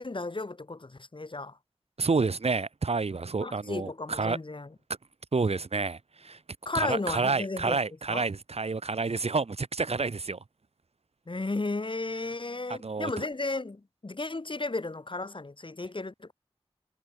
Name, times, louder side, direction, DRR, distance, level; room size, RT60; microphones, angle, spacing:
voice 1, 0.0-1.6 3.4-4.7 6.7-7.8 8.1-8.2 11.3-16.3, left 2 dB, 50° left, 7.0 m, -34 dB
voice 2, 2.0-4.4 5.3-6.4 6.7-10.4 12.7-13.1, right 4 dB, 75° right, 2.8 m, -29 dB
wide cardioid pair, 50°, 11 cm